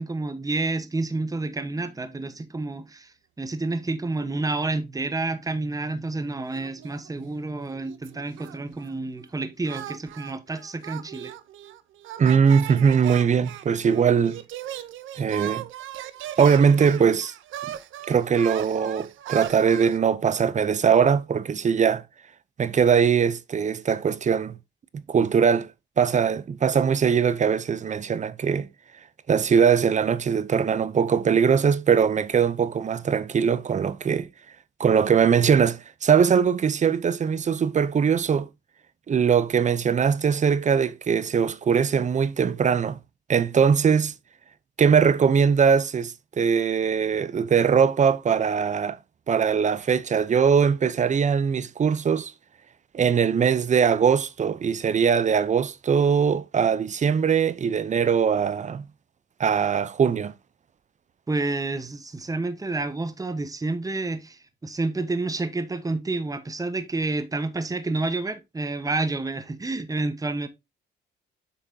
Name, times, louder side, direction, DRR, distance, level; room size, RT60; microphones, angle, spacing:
voice 1, 0.0-11.3 61.3-70.5, right 2 dB, 15° right, 1.2 m, -29 dB
sound 1, 6.5-7.4 7.7-9.0 9.6-20.0, right 12 dB, 80° right, 0.7 m, -38 dB
voice 2, 12.2-14.4 15.2-15.6 16.4-17.3 18.1-22.0 22.6-24.6 25.1-25.7 26.0-28.7 29.3-34.3 34.8-38.5 39.1-43.0 43.3-44.1 44.8-49.0 49.3-52.3 52.9-58.8 59.4-60.3, right 7 dB, 40° right, 0.7 m, -21 dB
8.2 x 5.8 x 2.8 m
cardioid pair, 90°, 20 cm